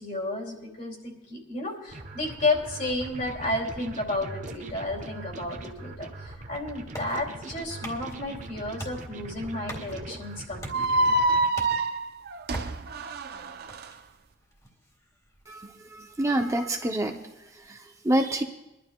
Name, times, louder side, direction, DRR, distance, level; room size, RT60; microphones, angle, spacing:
voice 1, 0.0-11.1, left 2 dB, 50° left, -1 dB, 2.7 m, -32 dB
sound 1, 1.9-11.5, right 2 dB, 40° right, 0.9 m, -41 dB
sound 2, 6.4-17.7, equal, 20° left, 1.9 m, -46 dB
sound 3, 10.7-13.9, right 2 dB, 60° right, 0.5 m, -26 dB
voice 2, 15.5-17.2 17.5-18.4, right 1 dB, 15° right, 3 dB, 0.6 m, -27 dB
24.0 x 12.0 x 2.3 m, 0.93 s
head